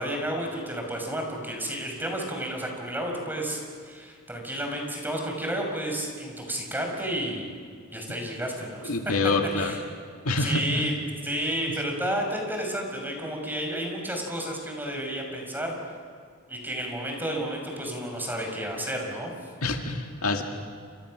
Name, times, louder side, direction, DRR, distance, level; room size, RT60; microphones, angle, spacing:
voice 1, 0.0-7.5 7.9-8.9 9.6-9.8 10.4-10.9 11.2-15.7 16.5-19.3, right 1 dB, 10° right, 1 dB, 5.4 m, -31 dB
voice 2, 8.8-9.8 10.2-10.8 19.6-20.4, left 2 dB, 80° left, 3 dB, 2.4 m, -26 dB
29.0 x 27.0 x 6.4 m, 2.1 s
head